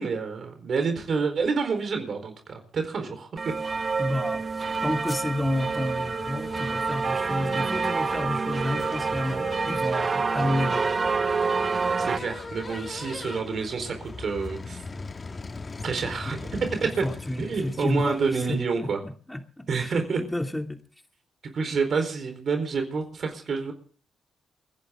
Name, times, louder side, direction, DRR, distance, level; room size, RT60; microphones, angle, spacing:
voice 1, 0.0-3.4 12.0-14.8 15.8-16.4 17.4-19.0 19.7-20.2 21.4-23.7, right 5 dB, 60° right, 6 dB, 4.3 m, -28 dB
sound 1, 3.4-12.2, right 4 dB, 40° right, 0.6 m, -27 dB
sound 2, 4.0-18.6, left 3 dB, 35° left, 1.9 m, -40 dB
voice 2, 4.0-4.5 4.8-10.9 17.0-18.9 19.3-20.8, left 1 dB, 10° left, 5 dB, 2.8 m, -30 dB
29.0 x 11.0 x 3.8 m, 0.41 s
supercardioid pair, 65°, 0 cm